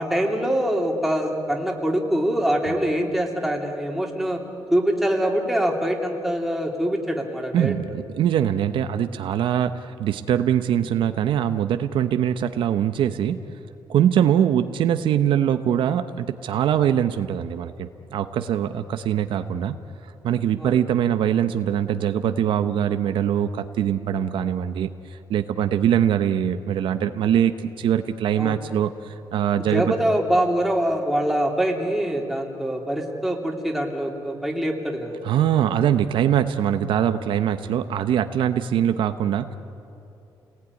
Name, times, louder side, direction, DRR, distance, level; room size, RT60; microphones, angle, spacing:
voice 1, 0.0-4.4 4.7-7.7 20.6-20.7 28.4-28.6 29.6-35.2, equal, ahead, 0 dB, 3.1 m, -24 dB
voice 2, 7.5-13.4 13.9-19.7 20.2-29.9 35.2-39.5, right 9 dB, 75° right, 9 dB, 1.0 m, -22 dB
30.0 x 19.5 x 9.7 m, 2.8 s
cardioid pair, 145°, 9 cm